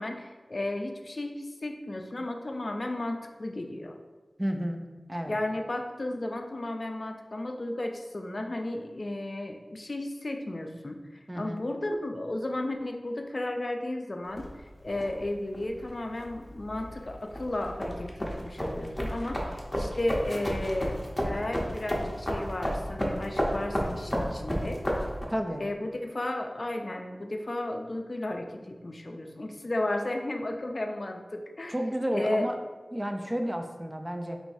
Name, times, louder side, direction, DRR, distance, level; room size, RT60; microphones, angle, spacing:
voice 1, 0.0-4.0 5.3-24.8 25.6-31.7 32.1-32.5, left 1 dB, 50° left, 4 dB, 0.4 m, -34 dB
voice 2, 4.4-4.8 5.1-5.4 11.3-11.6 25.3-25.6 31.7-32.6 32.9-34.4, equal, 15° right, 5 dB, 0.4 m, -31 dB
sound 1, 14.3-25.3, equal, 15° left, 0.7 m, -33 dB
4.6 x 3.1 x 2.6 m, 1.3 s
wide cardioid pair, 55°, 0 cm